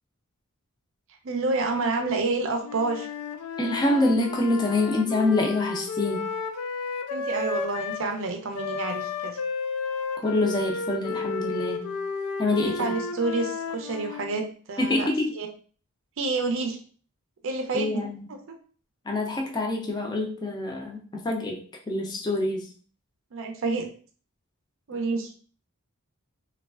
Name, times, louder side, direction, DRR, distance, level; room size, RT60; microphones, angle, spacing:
voice 1, 1.2-3.1 7.1-9.4 12.6-15.1 15.4-15.5 16.2-16.8 17.4-18.0 18.5-18.6 23.3-23.9 24.9-25.4, right 3 dB, 60° right, 4 dB, 0.5 m, -28 dB
Wind instrument woodwind instrument, 2.6-8.1 8.5-14.4, left 4 dB, 85° left, 0.4 m, -32 dB
voice 2, 3.6-6.3 10.2-12.0 12.4-13.0 14.8-15.3 17.7-18.2 19.1-22.7, left 2 dB, 20° left, 2 dB, 0.4 m, -26 dB
3.1 x 2.3 x 2.3 m, 0.42 s
head